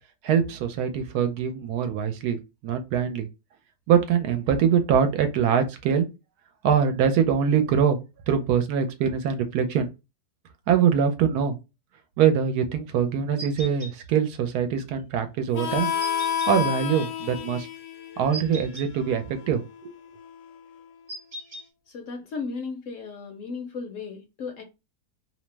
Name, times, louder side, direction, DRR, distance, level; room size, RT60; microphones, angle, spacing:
voice 1, 0.2-3.3 3.9-6.1 6.6-8.0 8.3-9.9 10.7-11.6 12.2-15.9 16.5-17.7 18.2-19.9, right 7 dB, 75° right, 1.1 m, -23 dB
sound 1, 13.4-13.9 16.0-16.5 18.3-18.9 21.1-21.6, right 1 dB, 40° right, 0.5 m, -37 dB
Harmonica, 15.5-20.8, left 9 dB, 80° left, 1.2 m, -31 dB
voice 2, 21.9-24.6, left 4 dB, 65° left, 0.8 m, -35 dB
2.8 x 2.0 x 3.2 m
omnidirectional pair, 1.7 m